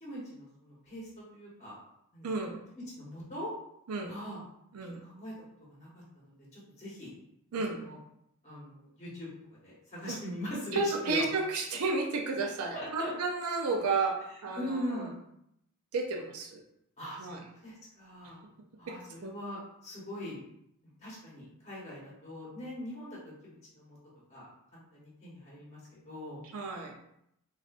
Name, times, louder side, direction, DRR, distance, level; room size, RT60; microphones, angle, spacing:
voice 1, 0.0-1.7 2.1-2.3 2.7-3.5 4.0-4.4 5.0-5.3 5.7-7.1 7.5-8.0 8.4-9.3 9.6-11.2 12.7-13.1 14.6-15.2 17.0-18.4 18.8-20.4 21.0-23.2 23.4-24.0 24.3-24.5 24.7-25.8 26.0-26.4, equal, 30° left, -6 dB, 1.1 m, -41 dB
voice 2, 2.2-2.6 3.9-4.1 4.7-5.0 7.5-7.9 10.1-10.2 10.7-15.0 15.9-16.6 17.2-17.4 18.9-19.0 19.2-19.3 26.5-26.9, right 3 dB, 85° right, 2 dB, 0.5 m, -32 dB
3.5 x 2.4 x 2.4 m, 0.76 s
head